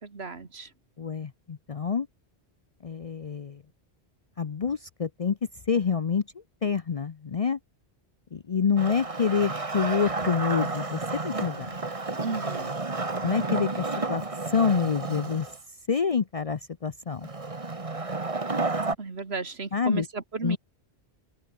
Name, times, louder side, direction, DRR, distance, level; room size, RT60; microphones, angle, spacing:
voice 1, 0.0-0.7 12.1-12.8 19.0-20.6, right 4 dB, 70° right, 2.3 m, -34 dB
voice 2, 1.0-2.1 2.8-3.6 4.4-5.4 5.7-7.6 8.3-11.7 13.2-15.5 15.9-17.3 19.7-20.1 20.4-20.6, left 6 dB, 40° left, 0.6 m, -27 dB
Wood, 8.8-15.6 17.2-18.9, right 3 dB, 30° right, 1.6 m, -31 dB
omnidirectional pair, 1.1 m